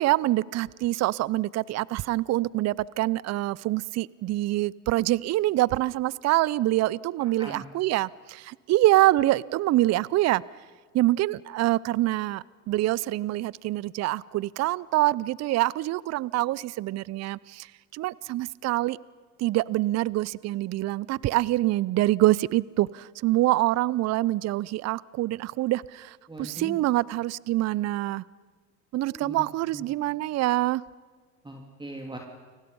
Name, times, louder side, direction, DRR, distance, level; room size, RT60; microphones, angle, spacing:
voice 1, 0.0-10.4 10.9-19.0 19.4-28.2 28.9-30.8, right 16 dB, 35° right, 23 dB, 0.6 m, -25 dB
voice 2, 7.2-7.7 26.3-26.8 29.0-29.4 29.7-29.8 31.4-32.2, right 1 dB, 10° right, 2 dB, 2.9 m, -40 dB
30.0 x 24.0 x 5.4 m, 1.5 s
hypercardioid pair, 75°, 45 cm